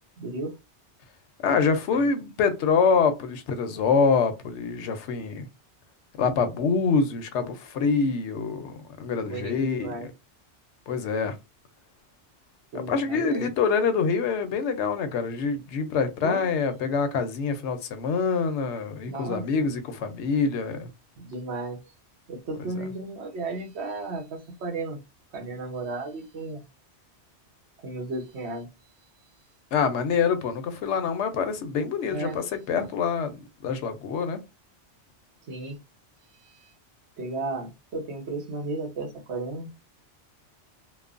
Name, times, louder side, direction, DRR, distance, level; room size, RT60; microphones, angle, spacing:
voice 1, 0.2-0.6 1.9-2.0 9.2-10.1 12.7-13.5 16.2-16.5 19.0-19.7 21.2-21.8 22.3-25.0 25.3-26.6 27.8-28.7 32.1-32.4 35.5-35.8 36.4-36.7 37.2-39.7, right 2 dB, 70° right, 1.1 m, -34 dB
voice 2, 1.4-5.5 6.2-8.7 9.0-10.0 10.9-11.3 12.7-20.9 29.7-33.4 33.6-34.4, left 5 dB, 80° left, 0.9 m, -25 dB
3.1 x 2.0 x 2.4 m
omnidirectional pair, 1.2 m